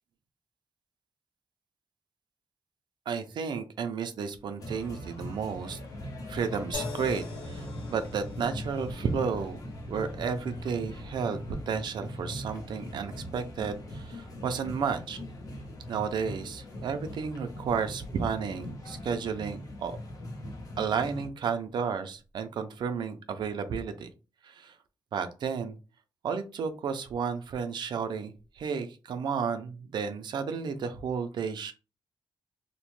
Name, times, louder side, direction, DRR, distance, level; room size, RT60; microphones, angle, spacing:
voice 1, 3.1-5.8 6.3-9.6 9.9-15.2 15.9-20.0 20.8-24.1 24.4-24.8 25.1-25.8 26.2-31.7, right 6 dB, 70° right, 8 dB, 0.4 m, -32 dB
sound 1, 4.6-21.3, left 1 dB, 50° left, 0.7 m, -41 dB
sound 2, 6.7-20.1 21.0-21.2, left 4 dB, 85° left, 1.6 m, -48 dB
2.9 x 2.1 x 3.0 m, 0.32 s
wide cardioid pair, 180°, 8 cm